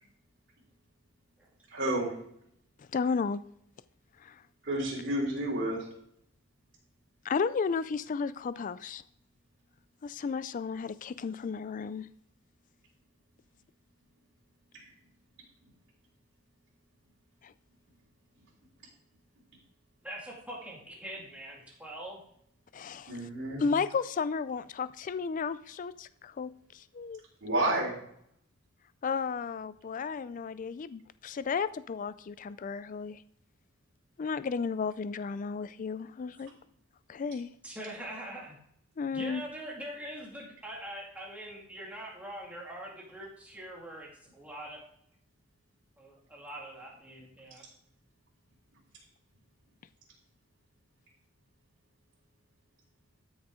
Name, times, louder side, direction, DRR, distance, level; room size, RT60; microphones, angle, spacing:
voice 1, 1.7-2.1 4.6-5.9 14.7-14.8 23.1-23.7 27.4-27.9, right 1 dB, 55° right, -4 dB, 3.6 m, -30 dB
voice 2, 2.8-3.4 4.2-4.4 7.2-9.0 10.0-12.1 17.4-17.5 22.7-23.1 23.6-27.2 29.0-33.2 34.2-36.5 37.1-37.5 39.0-39.4, left 5 dB, 35° left, 15 dB, 0.3 m, -33 dB
voice 3, 20.0-22.2 37.6-38.6 39.1-44.8 46.0-47.6, right 1 dB, 5° right, -3 dB, 2.2 m, -43 dB
13.0 x 6.3 x 3.7 m, 0.70 s
head